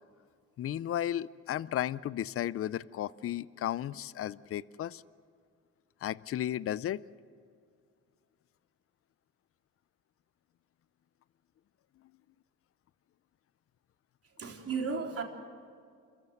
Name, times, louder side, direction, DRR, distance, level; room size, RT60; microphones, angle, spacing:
voice 1, 0.6-5.0 6.0-7.0, left 11 dB, 50° left, 19 dB, 0.5 m, -34 dB
voice 2, 14.4-15.2, right 5 dB, 50° right, 2 dB, 3.6 m, -34 dB
28.5 x 14.5 x 7.9 m, 2.2 s
cardioid pair, 90°, 30 cm